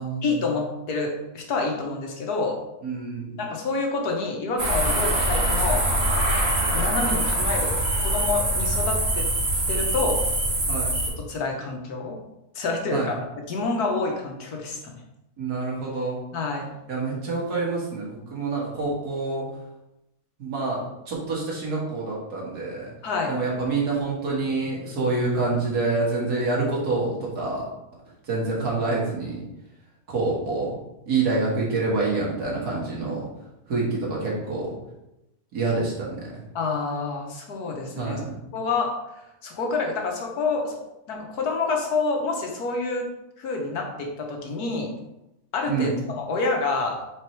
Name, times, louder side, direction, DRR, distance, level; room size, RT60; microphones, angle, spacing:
voice 1, 0.2-2.6 3.4-5.8 6.7-9.3 9.7-10.2 11.2-12.2 12.5-13.1 13.5-14.9 16.3-16.7 23.0-23.3 36.5-38.2 38.5-40.7 41.1-43.1 43.4-44.9 45.5-47.0, left 3 dB, 90° left, 1 dB, 1.6 m, -28 dB
voice 2, 2.8-3.4 10.7-11.0 12.9-13.1 15.4-16.2 16.9-19.5 20.4-20.8 21.1-22.9 23.3-27.6 28.2-29.5 30.1-30.8 31.1-33.3 33.7-34.8 35.5-36.4 38.0-38.3 45.7-46.0, right 3 dB, 85° right, -4 dB, 2.2 m, -27 dB
sound 1, 4.6-11.1, right 1 dB, 45° right, 1.6 m, -23 dB
4.8 x 4.4 x 4.6 m, 0.92 s
omnidirectional pair, 1.6 m